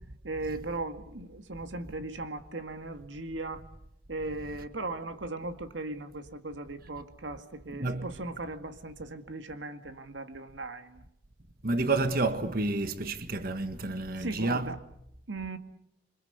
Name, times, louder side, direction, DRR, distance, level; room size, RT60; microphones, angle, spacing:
voice 1, 0.2-3.6 4.1-11.0 14.2-14.8 15.3-15.6, right 2 dB, 85° right, 2.0 m, -38 dB
voice 2, 11.6-14.7, right 2 dB, 50° right, 1.7 m, -29 dB
28.0 x 25.0 x 8.1 m
head